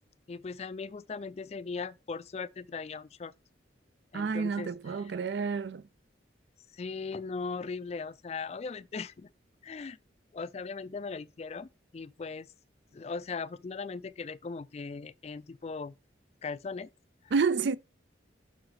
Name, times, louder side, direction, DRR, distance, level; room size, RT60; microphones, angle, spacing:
voice 1, 0.3-3.3 4.1-5.1 6.7-9.3 9.6-10.0 10.3-12.5 12.9-15.9 16.4-16.9, left 4 dB, 35° left, 0.3 m, -39 dB
voice 2, 4.1-5.8 17.3-17.8, right 5 dB, 70° right, 0.4 m, -29 dB
6.4 x 4.8 x 4.7 m
head